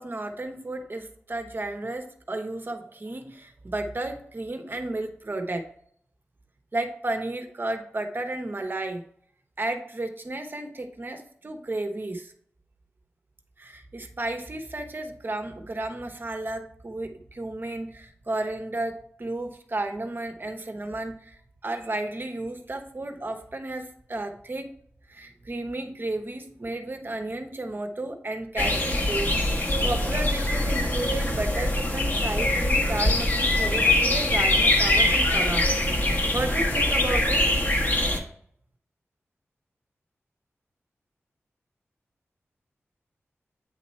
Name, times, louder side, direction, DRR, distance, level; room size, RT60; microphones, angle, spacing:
voice 1, 0.0-5.6 6.7-9.0 9.6-12.3 13.6-21.4 21.6-24.7 25.1-35.6 36.3-37.4, right 2 dB, 45° right, 5 dB, 1.0 m, -33 dB
sound 1, 28.6-38.2, left 1 dB, 40° left, 1.4 m, -23 dB
8.9 x 3.0 x 4.3 m, 0.62 s
cardioid pair, 55°, 5 cm